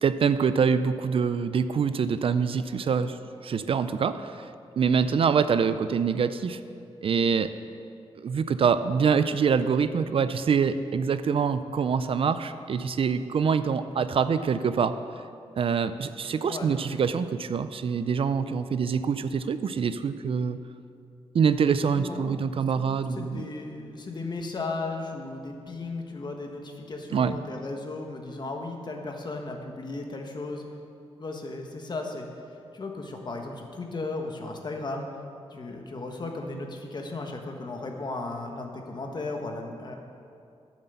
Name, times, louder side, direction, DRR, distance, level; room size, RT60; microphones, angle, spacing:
voice 1, 0.0-3.2 3.4-4.5 4.8-6.6 7.0-7.5 8.2-14.9 15.6-20.6 21.3-23.4 27.1-27.4, right 6 dB, 60° right, 12 dB, 0.4 m, -25 dB
voice 2, 21.9-30.6 31.2-32.3 32.7-35.1 35.5-40.0, left 3 dB, 40° left, 2 dB, 1.4 m, -35 dB
10.0 x 7.5 x 6.9 m, 2.5 s
wide cardioid pair, 100°, 11 cm